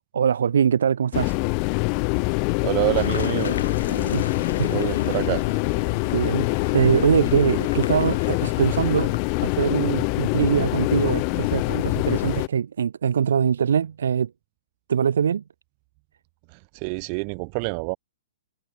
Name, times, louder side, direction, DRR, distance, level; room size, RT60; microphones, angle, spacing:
voice 1, 0.1-1.4 4.1-4.3 4.6-4.8 6.1-6.5 6.7-9.1 9.4-14.3 14.9-15.4, right 7 dB, 75° right, 0.8 m, -22 dB
sound 1, 1.1-12.5, left 40 dB or more, 25° left, 0.6 m, -24 dB
voice 2, 2.6-3.6 3.9-4.1 4.7-5.4 16.8-18.0, right 40 dB or more, 25° right, 1.6 m, -26 dB
Car passing by / Engine, 3.0-9.5, left 7 dB, 80° left, 5.4 m, -35 dB
hypercardioid pair, 170°, 0 cm